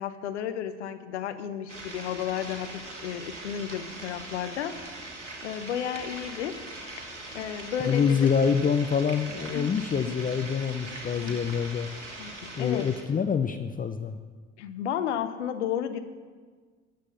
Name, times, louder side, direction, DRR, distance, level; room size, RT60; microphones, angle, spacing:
voice 1, 0.0-5.1 5.4-6.6 7.3-8.3 9.5-9.7 10.1-10.2 11.2-11.3 12.2-12.9 14.6-16.0, left 9 dB, 75° left, 9 dB, 0.9 m, -33 dB
sound 1, 1.7-13.0, right 2 dB, 85° right, 1.3 m, -41 dB
voice 2, 7.9-11.9 12.6-14.2, left 6 dB, 25° left, 8 dB, 0.6 m, -26 dB
12.5 x 7.7 x 7.1 m, 1.5 s
figure-of-eight pair, 55°, 35 cm